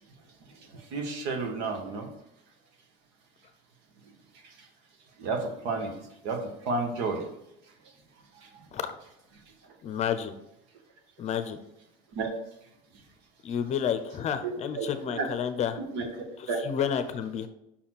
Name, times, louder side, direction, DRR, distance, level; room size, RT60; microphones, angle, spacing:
voice 1, 0.9-2.1 5.2-5.9 6.2-6.4 6.6-7.2 12.1-12.3 14.4-15.3 15.9-16.6, right 3 dB, 75° right, 4 dB, 1.6 m, -31 dB
voice 2, 9.8-10.3 11.2-11.6 13.4-15.8 16.6-17.5, left 8 dB, 35° left, 9 dB, 0.6 m, -30 dB
5.9 x 4.3 x 6.0 m, 0.85 s
cardioid pair, 150°, 19 cm